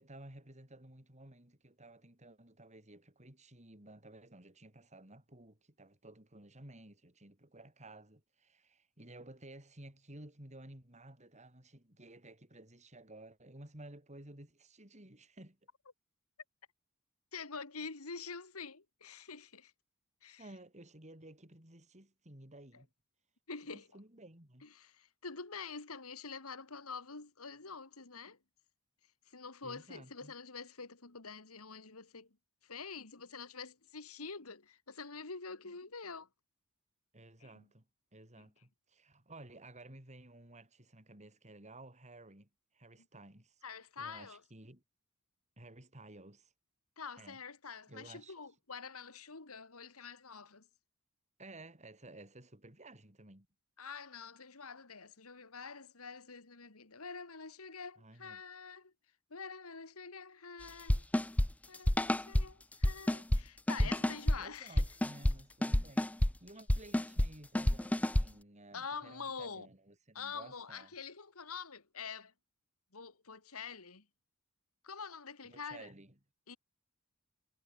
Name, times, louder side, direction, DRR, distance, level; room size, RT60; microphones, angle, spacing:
voice 1, 0.0-15.6 20.4-22.9 23.7-24.7 29.6-30.3 37.1-37.9 38.1-42.5 42.7-43.6 44.0-44.8 45.6-46.5 47.2-47.4 47.9-48.3 51.4-53.5 58.0-58.4 63.8-64.0 64.4-70.9 75.4-76.2, right 1 dB, 35° right, 5.5 m, -54 dB
voice 2, 17.3-19.7 20.2-20.5 22.7-22.8 23.5-23.9 24.6-28.4 29.3-32.3 32.6-36.3 37.4-37.7 38.4-38.5 43.6-44.4 47.0-50.7 53.8-58.9 59.3-61.0 61.7-64.8 68.7-69.7 70.1-72.3 72.9-74.1 74.8-75.9 76.5-76.6, left 5 dB, 90° left, 2.3 m, -46 dB
sound 1, 60.9-62.4 62.8-63.4 63.7-64.4 64.8-65.3 65.6-66.3 66.7-67.3 67.5-68.3, left 1 dB, 5° left, 0.4 m, -28 dB
head